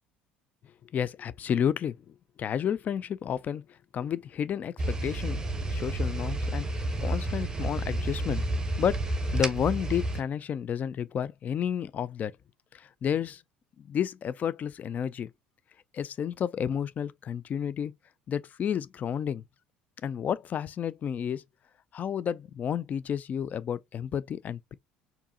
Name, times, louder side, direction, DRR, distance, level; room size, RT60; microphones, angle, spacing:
voice 1, 0.9-3.6 3.9-5.4 5.7-8.4 8.8-12.3 12.7-13.4 13.8-15.3 15.9-17.9 18.3-19.4 20.0-21.4 21.9-24.7, left 8 dB, 35° left, 0.3 m, -31 dB
sound 1, 4.8-10.2, right 1 dB, 15° right, 0.8 m, -30 dB
4.5 x 2.6 x 2.7 m
figure-of-eight pair, 60°, 5 cm